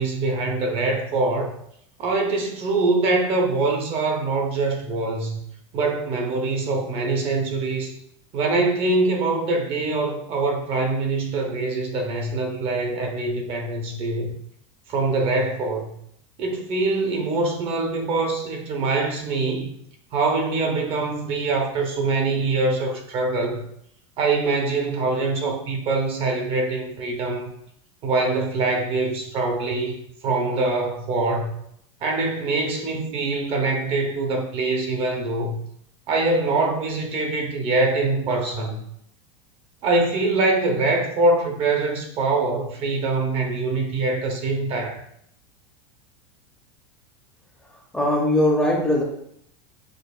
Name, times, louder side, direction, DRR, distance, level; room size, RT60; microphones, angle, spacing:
voice 1, 0.0-1.5 2.0-5.4 5.7-7.9 8.3-14.3 14.9-16.0 16.4-19.7 20.1-23.6 24.2-27.5 28.0-30.0 30.2-31.5 32.0-35.6 36.1-38.8 39.8-45.0, right 3 dB, 40° right, 0.8 m, -24 dB
voice 2, 47.9-49.0, left 1 dB, 5° left, 0.7 m, -20 dB
6.4 x 2.5 x 2.4 m
supercardioid pair, 135°, 15 cm